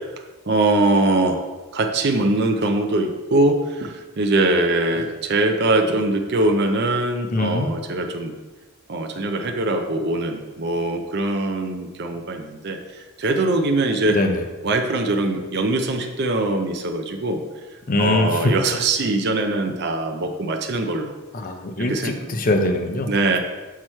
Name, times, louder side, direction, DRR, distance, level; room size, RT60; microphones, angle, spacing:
voice 1, 0.5-1.4 1.7-8.3 8.9-12.8 13.2-14.2 14.6-17.4 18.0-21.1 21.9-22.1 23.1-23.4, right 2 dB, 50° right, 4 dB, 0.5 m, -22 dB
voice 2, 7.3-7.7 14.1-14.4 17.9-18.5 21.3-23.1, left 2 dB, 40° left, 4 dB, 0.6 m, -22 dB
6.1 x 4.7 x 4.3 m, 1.2 s
head